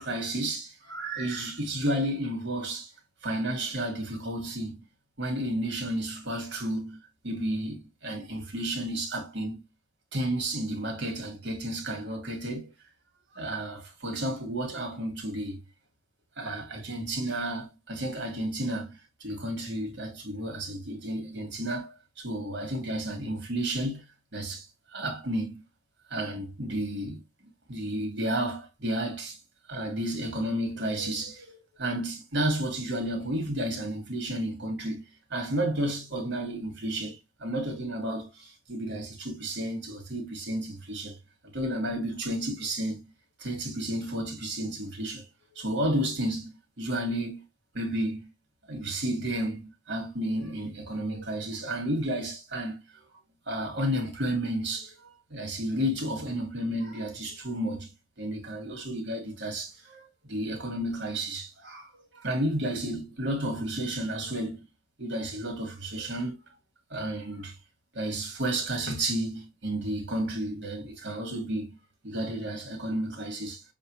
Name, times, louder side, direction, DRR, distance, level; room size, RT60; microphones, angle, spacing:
voice 1, 0.0-2.9 3.2-4.8 5.2-9.6 10.1-12.7 13.3-15.6 16.4-24.0 24.3-24.7 24.9-25.6 26.1-27.2 27.7-29.4 29.7-35.0 35.3-41.2 41.5-43.0 43.4-45.3 45.5-47.4 47.7-48.3 48.7-53.0 53.5-64.6 65.0-66.4 66.9-67.5 67.9-71.8 72.0-73.6, right 1 dB, 60° right, 1.9 m, -32 dB
7.0 x 2.3 x 3.0 m
head